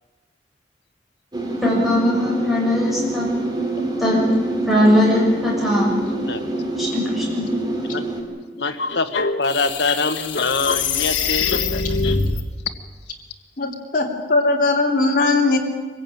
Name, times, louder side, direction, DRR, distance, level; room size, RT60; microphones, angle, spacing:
sound 1, 1.3-8.2, right 2 dB, 25° right, 3.6 m, -25 dB
voice 1, 1.6-3.3 4.0-4.2 4.7-5.9 6.8-7.5, left 1 dB, ahead, -5 dB, 6.8 m, -19 dB
sound 2, 8.6-12.4, left 4 dB, 85° left, 1.4 m, -23 dB
voice 2, 8.6-9.1 9.4-11.5, left 4 dB, 65° left, 8 dB, 1.4 m, -24 dB
voice 3, 13.6-15.6, left 3 dB, 50° left, 0 dB, 3.1 m, -19 dB
24.0 x 15.5 x 9.1 m, 1.4 s
head